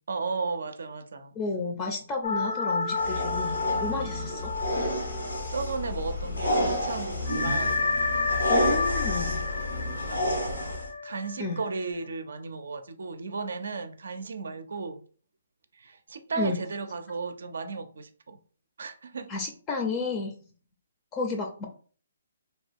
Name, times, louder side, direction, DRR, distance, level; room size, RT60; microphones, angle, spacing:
voice 1, 0.1-1.4 3.7-4.5 5.5-7.8 10.1-10.5 11.0-15.0 15.7-18.4 18.8-19.3, right 4 dB, 70° right, 0.5 m, -35 dB
voice 2, 1.3-4.5 8.5-9.4 11.4-11.6 16.4-16.6 19.3-20.4 21.1-21.6, left 3 dB, 25° left, 0.5 m, -32 dB
sound 1, 2.2-6.2 6.5-6.6 7.3-11.9, left 3 dB, 70° left, 0.5 m, -30 dB
sound 2, 2.9-10.9, left 1 dB, 90° left, 1.2 m, -30 dB
2.7 x 2.2 x 3.4 m
hypercardioid pair, 145°, 0 cm